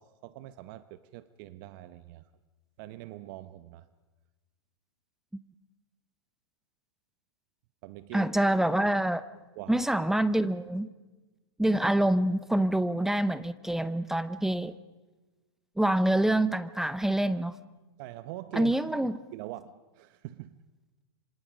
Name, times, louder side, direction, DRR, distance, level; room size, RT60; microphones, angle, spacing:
voice 1, 0.0-2.2 2.8-3.9 7.8-8.3 9.6-9.9 18.0-18.8 19.3-20.6, right 15 dB, 50° right, 14 dB, 0.9 m, -43 dB
voice 2, 8.1-9.2 9.7-10.9 11.6-14.7 15.8-17.6 18.5-19.2, right 1 dB, 5° right, 15 dB, 0.8 m, -26 dB
26.5 x 26.0 x 5.2 m, 1.2 s
hypercardioid pair, 125°, 14 cm